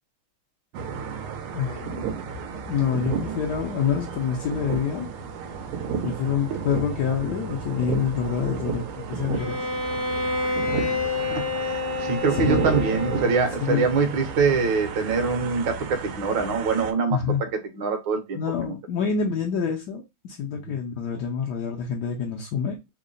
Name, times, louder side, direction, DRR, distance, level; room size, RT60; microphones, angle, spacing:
sound 1, 0.7-16.9, right 6 dB, 85° right, 1.5 m, -32 dB
voice 1, 1.5-2.0 2.7-5.1 6.0-9.6 12.3-12.8 13.6-13.9 17.1-17.4 18.3-22.9, left 7 dB, 75° left, 0.9 m, -27 dB
Bowed string instrument, 9.3-13.8, left 3 dB, 15° left, 0.5 m, -29 dB
voice 2, 11.3-17.2 17.7-18.8 20.6-20.8, right 4 dB, 65° right, 1.4 m, -24 dB
3.7 x 2.1 x 3.7 m
omnidirectional pair, 2.4 m